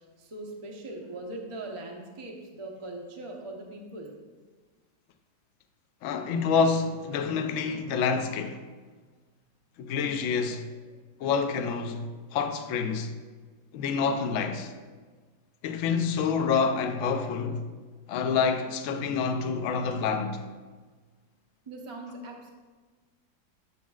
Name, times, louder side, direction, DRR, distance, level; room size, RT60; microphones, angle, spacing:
voice 1, 0.2-4.1 21.7-22.5, right 2 dB, 55° right, 0.3 m, -40 dB
voice 2, 6.0-8.6 9.8-10.7 11.2-12.1 12.3-13.1 13.7-14.7 15.6-17.6 18.1-20.4, left 5 dB, 75° left, 0.7 m, -27 dB
8.2 x 7.2 x 2.3 m
omnidirectional pair, 2.0 m